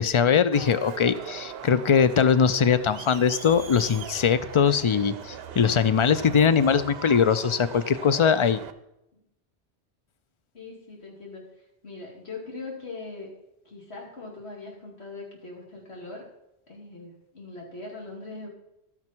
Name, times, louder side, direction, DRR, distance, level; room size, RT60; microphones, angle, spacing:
voice 1, 0.0-8.6, left 7 dB, 55° left, 13 dB, 0.3 m, -21 dB
Crowd, 0.5-8.7, right 7 dB, 65° right, 1.0 m, -39 dB
voice 2, 10.5-13.3 13.6-16.3 16.7-18.5, left 3 dB, 75° left, -2 dB, 3.1 m, -41 dB
12.0 x 9.5 x 4.5 m, 0.85 s
omnidirectional pair, 1.1 m